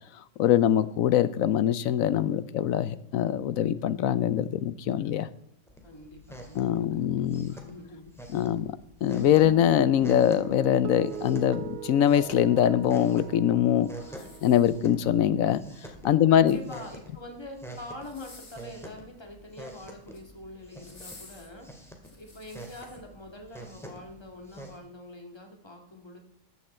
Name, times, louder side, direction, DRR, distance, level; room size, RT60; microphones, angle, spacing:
voice 1, 0.4-5.3 6.5-7.5 8.3-13.9 14.4-15.6 16.0-16.6, left 10 dB, 75° left, 16 dB, 1.0 m, -23 dB
sound 1, 5.7-24.8, right 1 dB, ahead, 1.9 m, -47 dB
voice 2, 5.8-8.1 16.3-26.2, left 1 dB, 20° left, 2 dB, 1.9 m, -45 dB
Guitar, 9.5-16.0, right 9 dB, 75° right, 1.0 m, -42 dB
sound 2, 14.2-15.1 16.2-17.0 17.9-18.8 19.9-20.3 20.8-23.0 23.6-23.7, left 3 dB, 55° left, 2.4 m, -52 dB
14.0 x 9.3 x 4.3 m, 0.77 s
omnidirectional pair, 1.5 m